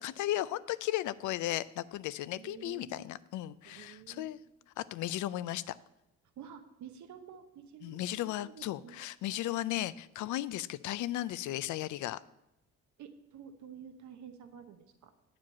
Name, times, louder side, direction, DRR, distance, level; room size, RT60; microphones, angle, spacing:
voice 1, 0.0-4.4 4.8-5.8 7.8-12.2, left 14 dB, 75° left, 17 dB, 0.5 m, -35 dB
voice 2, 2.3-3.1 3.7-4.4 6.4-9.0 13.0-15.1, right 8 dB, 70° right, 6 dB, 0.9 m, -50 dB
9.0 x 5.1 x 7.3 m, 0.87 s
cardioid pair, 90°, 30 cm